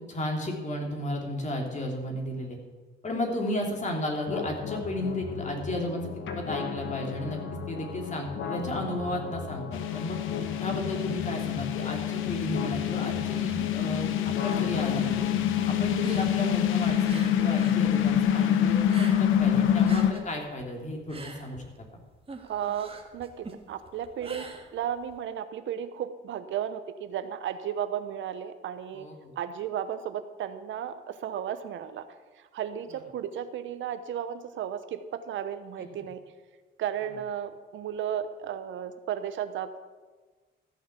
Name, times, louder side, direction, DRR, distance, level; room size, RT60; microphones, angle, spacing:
voice 1, 0.1-2.6 3.0-6.1 6.3-7.4 7.7-10.2 10.6-15.3 15.6-18.8 19.2-21.6 28.9-29.3, left 1 dB, 35° left, 1 dB, 3.0 m, -33 dB
sound 1, 4.3-20.3, left 5 dB, 70° left, 1.4 m, -38 dB
sound 2, 9.7-20.1, left 10 dB, 90° left, 0.8 m, -26 dB
sound 3, 15.9-17.8 18.1-19.5 19.7-25.2, right 3 dB, 30° right, 1.9 m, -44 dB
voice 2, 22.5-29.1 29.4-32.1 32.3-36.2 36.8-39.8, right 9 dB, 75° right, 11 dB, 0.9 m, -34 dB
14.0 x 6.1 x 8.2 m, 1.3 s
cardioid pair, 90°, 20 cm